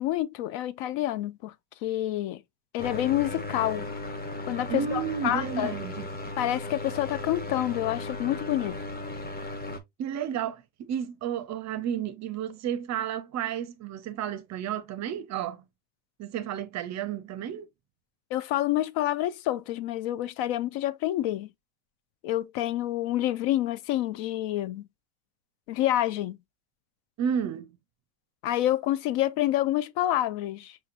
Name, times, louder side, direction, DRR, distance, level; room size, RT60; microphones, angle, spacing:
voice 1, 0.0-1.5 1.8-2.4 2.7-3.9 4.5-5.7 6.4-8.8 18.3-21.5 22.2-24.9 25.7-26.4 28.4-30.8, left 13 dB, 65° left, 0.6 m, -28 dB
sound 1, 2.8-9.8, left 2 dB, 20° left, 0.8 m, -36 dB
voice 2, 4.7-6.1 10.0-15.6 16.2-17.7 27.2-27.7, right 9 dB, 35° right, 0.5 m, -32 dB
5.6 x 2.9 x 2.4 m
cardioid pair, 125°, 49 cm